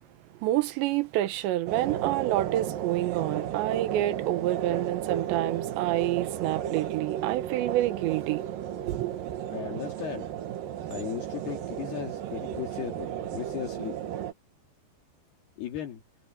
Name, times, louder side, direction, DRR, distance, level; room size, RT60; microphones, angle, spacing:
voice 1, 0.4-8.4 8.9-9.1, right 15 dB, 85° right, 3.3 m, -28 dB
sound 1, 1.7-14.3, right 10 dB, 65° right, 2.7 m, -34 dB
voice 2, 9.5-10.3 10.9-14.0 15.6-16.0, left 11 dB, 65° left, 3.8 m, -36 dB
omnidirectional pair, 5.1 m